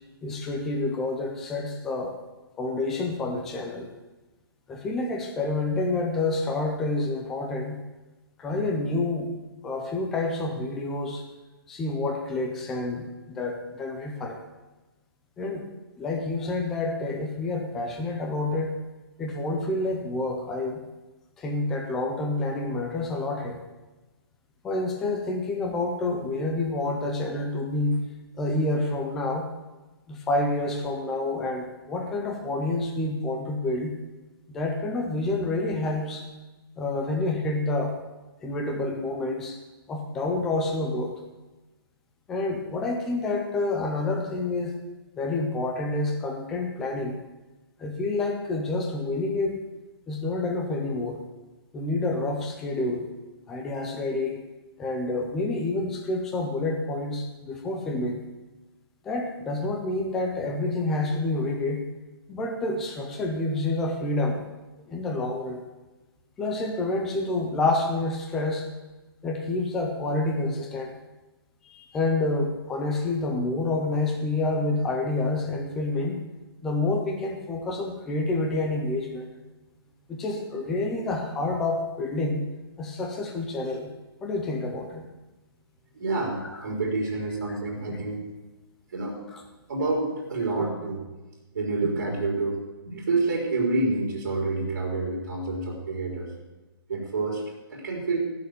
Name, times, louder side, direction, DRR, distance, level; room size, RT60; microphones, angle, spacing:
voice 1, 0.2-2.2 2.6-3.9 4.7-7.8 8.4-9.3 9.6-11.2 11.7-14.4 15.4-15.7 16.0-18.7 19.2-20.8 21.4-23.6 24.6-28.0 28.4-29.5 30.1-33.9 34.5-36.2 36.8-38.0 38.4-39.6 39.9-41.1 42.3-44.7 45.2-47.2 47.8-49.6 50.1-51.2 51.7-53.1 53.5-54.4 54.8-58.2 59.0-61.9 62.3-64.4 64.9-65.6 66.4-68.7 69.2-70.9 71.6-76.2 76.6-79.3 80.1-82.4 82.8-83.9 84.2-85.1, left 2 dB, ahead, 2 dB, 0.3 m, -28 dB
voice 2, 85.9-88.2 88.9-89.2 89.7-91.0 91.5-96.3 96.9-97.4 97.7-98.2, right 3 dB, 40° right, -1 dB, 4.0 m, -28 dB
15.0 x 6.5 x 8.3 m, 1.1 s
hypercardioid pair, 180°, 13 cm